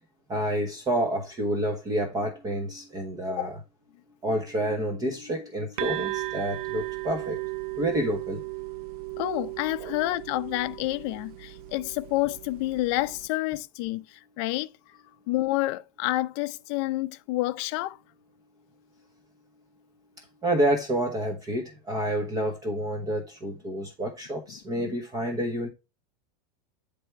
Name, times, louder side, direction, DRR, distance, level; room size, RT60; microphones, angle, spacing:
voice 1, 0.3-3.6 4.2-7.4 7.8-8.4 9.8-9.9 20.2-25.7, right 1 dB, 20° right, 1.0 m, -29 dB
sound 1, 5.8-13.3, right 17 dB, 70° right, 0.5 m, -36 dB
voice 2, 9.2-14.7 15.3-18.0 24.8-24.9, left 18 dB, 45° left, 0.5 m, -29 dB
9.5 x 3.4 x 4.5 m
supercardioid pair, 155°, 20 cm